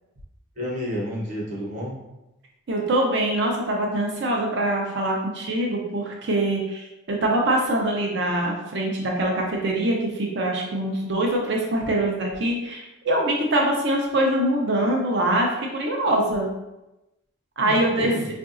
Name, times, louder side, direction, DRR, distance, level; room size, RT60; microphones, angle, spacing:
voice 1, 0.6-2.0 17.6-18.3, equal, 40° right, -5 dB, 1.0 m, -30 dB
voice 2, 2.7-15.5 15.7-16.5 17.6-18.1, right 1 dB, 55° right, 0 dB, 0.6 m, -23 dB
4.7 x 2.5 x 2.5 m, 0.96 s
head